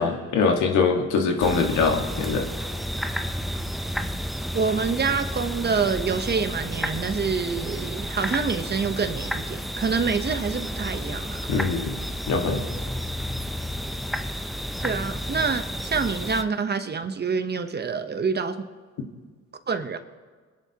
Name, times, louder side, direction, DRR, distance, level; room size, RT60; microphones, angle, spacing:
voice 1, 0.0-2.5 11.5-12.0 12.3-12.7, left 4 dB, 80° left, 3 dB, 1.7 m, -23 dB
sound 1, 1.4-16.4, equal, ahead, 0.6 m, -31 dB
voice 2, 4.5-11.4 14.8-18.7 19.7-20.0, right 5 dB, 35° right, 9 dB, 1.0 m, -26 dB
25.0 x 10.5 x 3.0 m, 1.5 s
cardioid pair, 90°, 30 cm